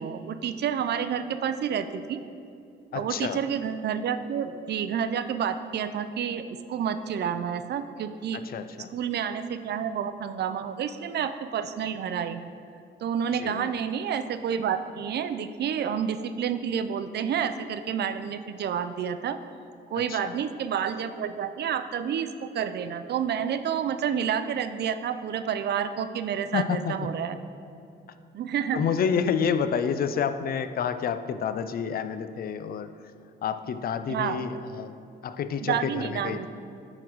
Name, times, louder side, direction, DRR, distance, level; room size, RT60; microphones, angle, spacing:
voice 1, 0.0-2.2 2.9-8.4 8.9-12.5 13.0-19.4 19.9-27.4 28.3-28.8 34.1-34.4 35.6-36.5, right 8 dB, 60° right, 11 dB, 0.5 m, -29 dB
voice 2, 2.9-3.4 8.5-8.9 13.4-13.7 20.1-20.3 26.5-26.9 28.7-32.9 33.4-34.9 35.2-36.5, left 7 dB, 50° left, 11 dB, 0.4 m, -29 dB
10.5 x 3.9 x 4.6 m, 2.4 s
cardioid pair, 90°, 20 cm